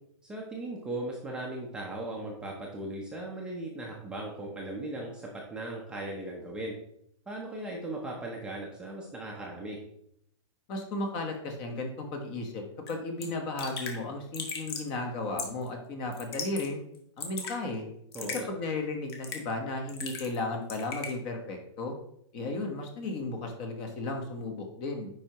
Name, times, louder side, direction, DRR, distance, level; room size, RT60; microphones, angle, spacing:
voice 1, 0.2-6.8 7.3-9.8 18.1-18.5, right 1 dB, 5° right, -3 dB, 0.7 m, -38 dB
voice 2, 10.7-12.6 12.9-16.8 17.2-17.8 18.5-21.9 22.3-25.1, left 2 dB, 30° left, 3 dB, 1.2 m, -34 dB
Raindrop / Drip, 12.9-13.0 13.2-13.3 13.6-14.0 14.3-14.9 15.4-15.7 16.1-16.7 16.9-17.5 18.1-18.4 19.1-19.5 19.9-20.4 20.7-21.1, left 5 dB, 55° left, 1.5 m, -37 dB
9.7 x 4.7 x 3.0 m, 0.72 s
hypercardioid pair, 165°, 15 cm